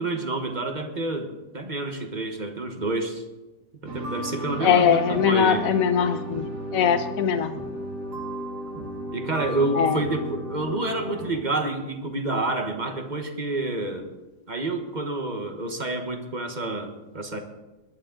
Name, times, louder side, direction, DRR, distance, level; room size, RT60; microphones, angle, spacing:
voice 1, 0.0-3.2 3.8-5.7 9.1-14.1 14.5-17.4, right 2 dB, 25° right, 5 dB, 1.2 m, -28 dB
sound 1, 3.9-11.3, equal, 60° right, 2.6 m, -34 dB
voice 2, 4.6-6.5 6.7-7.5 9.8-10.0, left 8 dB, 55° left, 9 dB, 1.3 m, -21 dB
22.0 x 11.5 x 3.9 m, 1.1 s
omnidirectional pair, 2.0 m